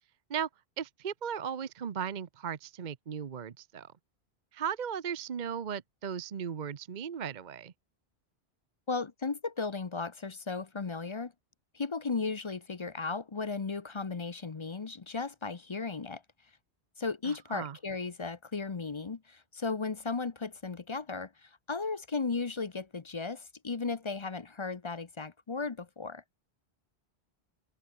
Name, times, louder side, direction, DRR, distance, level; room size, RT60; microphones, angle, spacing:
voice 1, 0.8-3.9 4.5-7.7 17.2-17.8, right 8 dB, 45° right, 0.9 m, -36 dB
voice 2, 8.9-11.3 11.7-16.2 17.0-26.2, left 4 dB, 30° left, 0.7 m, -35 dB
open air
omnidirectional pair, 1.1 m